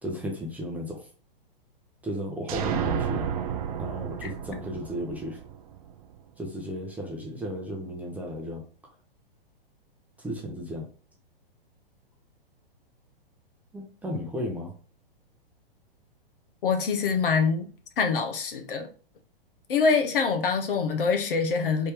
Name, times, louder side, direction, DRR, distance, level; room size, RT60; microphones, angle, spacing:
voice 1, 0.0-1.1 2.0-3.3 3.7-5.4 6.4-8.7 10.2-10.9 13.7-14.7, equal, 5° right, 0.7 m, -34 dB
sound 1, 2.5-6.2, right 8 dB, 40° right, 0.4 m, -31 dB
voice 2, 16.6-17.7 18.0-18.9 19.7-21.9, left 5 dB, 65° left, 0.8 m, -24 dB
3.4 x 2.6 x 3.4 m
figure-of-eight pair, 115°, 29 cm